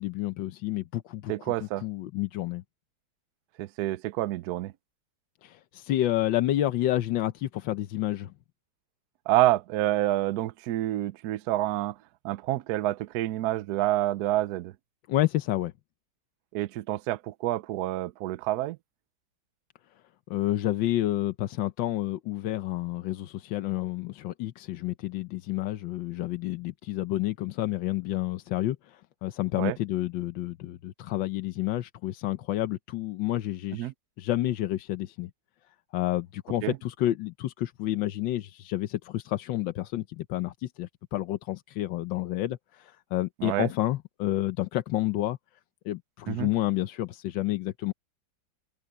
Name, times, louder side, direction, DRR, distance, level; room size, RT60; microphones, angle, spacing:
voice 1, 0.0-1.5 1.8-2.6 5.4-8.3 15.1-15.7 20.3-33.9 34.2-35.3 35.9-45.4 45.8-47.9, left 14 dB, 85° left, 1.5 m, -29 dB
voice 2, 1.3-1.8 3.6-4.7 9.3-11.9 12.2-14.7 16.5-18.8 29.6-29.8 33.7-33.9 36.6-36.8 43.4-43.7 46.3-46.5, right 15 dB, 70° right, 1.0 m, -28 dB
omnidirectional pair, 2.0 m